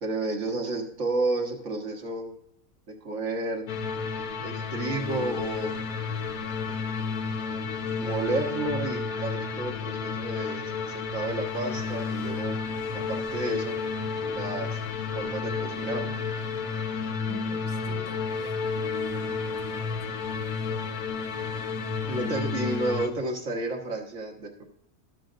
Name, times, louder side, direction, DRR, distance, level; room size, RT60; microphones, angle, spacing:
voice 1, 0.0-2.3 3.0-3.6 4.4-5.7 7.9-12.6 13.1-13.8 14.2-14.8 15.1-16.2 22.1-24.6, right 2 dB, 60° right, 2 dB, 1.7 m, -31 dB
sound 1, 3.7-23.1, left 5 dB, 85° left, 1.4 m, -31 dB
voice 2, 17.3-18.6 19.1-20.2 22.2-22.4, right 7 dB, 85° right, 3 dB, 1.8 m, -46 dB
12.5 x 7.6 x 2.5 m, 0.74 s
omnidirectional pair, 1.5 m